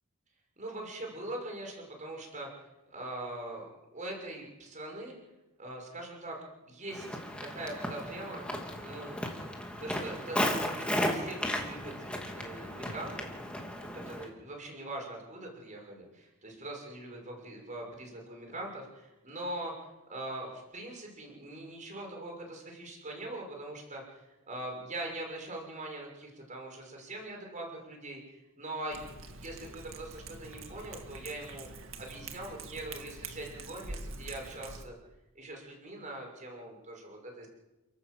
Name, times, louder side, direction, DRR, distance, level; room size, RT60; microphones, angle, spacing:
voice 1, 0.6-2.5 2.9-3.7 3.9-5.1 5.6-9.4 9.8-13.3 13.8-31.7 32.0-34.9 35.3-37.5, right 1 dB, 35° right, 1 dB, 6.2 m, -42 dB
Walk footsteps, 6.9-14.3, equal, 5° left, 2.6 m, -35 dB
Cat, 28.9-34.8, right 3 dB, 65° right, 2.0 m, -45 dB
29.5 x 12.5 x 7.8 m, 1.0 s
head